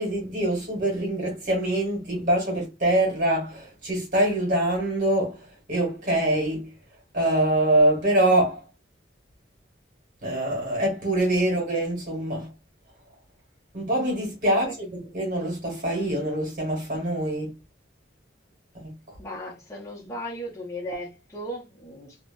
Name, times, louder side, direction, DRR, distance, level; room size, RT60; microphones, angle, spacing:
voice 1, 0.0-6.7 7.1-8.6 10.2-12.5 13.7-14.7 15.1-17.6 18.8-18.9, right 1 dB, 50° right, 1.4 m, -24 dB
voice 2, 19.2-22.2, equal, 20° left, 0.7 m, -36 dB
2.7 x 2.1 x 2.6 m
head